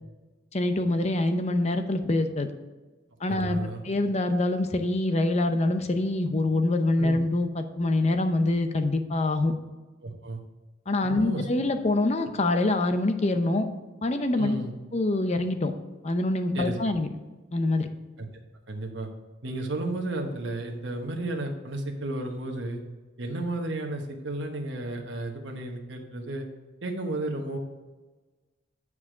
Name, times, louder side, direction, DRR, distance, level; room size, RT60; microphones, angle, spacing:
voice 1, 0.5-2.5 3.2-9.5 10.9-13.7 14.0-14.6 14.9-15.7 16.0-17.1 17.5-17.9, left 2 dB, 35° left, 8 dB, 0.7 m, -25 dB
voice 2, 3.3-3.9 7.0-7.2 10.0-10.4 11.0-11.5 14.3-14.7 16.5-16.8 18.2-18.3 18.7-19.1 19.4-22.8 23.2-26.5 26.8-27.6, right 2 dB, 65° right, 2 dB, 1.1 m, -33 dB
9.6 x 4.8 x 4.9 m, 1.2 s
head